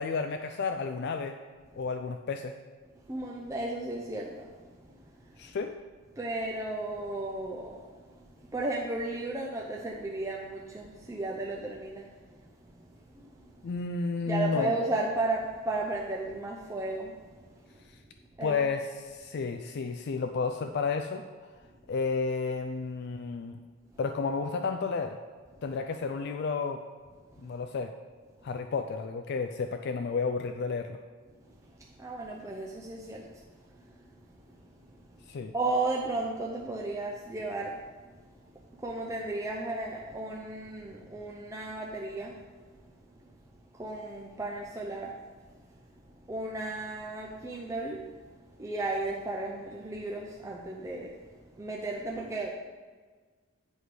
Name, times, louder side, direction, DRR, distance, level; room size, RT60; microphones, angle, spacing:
voice 1, 0.0-1.3 1.8-2.5 5.4-5.7 13.6-14.7 18.4-21.2 21.9-23.6 24.0-25.2 25.6-26.8 27.4-27.9 28.4-31.0 35.3-35.5, left 4 dB, 50° left, 6 dB, 0.4 m, -31 dB
voice 2, 3.0-5.5 6.1-13.7 14.3-17.8 18.4-18.6 27.4-27.5 31.4-35.2 35.5-37.8 38.0-38.5 38.8-42.8 43.2-43.3 43.7-45.2 45.5-45.6 46.3-51.2 51.5-52.5, right 2 dB, 15° right, -2 dB, 0.5 m, -35 dB
8.1 x 4.8 x 4.8 m, 1.4 s
head